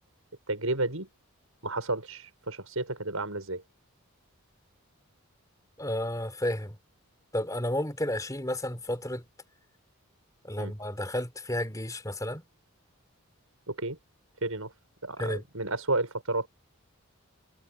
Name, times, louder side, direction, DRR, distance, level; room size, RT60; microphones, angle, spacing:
voice 1, 0.5-1.1 1.6-3.6 10.6-10.7 13.7-14.0 14.4-14.7 15.0-16.5, right 2 dB, 70° right, 6.7 m, -31 dB
voice 2, 5.8-6.8 7.3-9.2 10.4-12.4 15.2-15.4, left 1 dB, 15° left, 3.9 m, -32 dB
head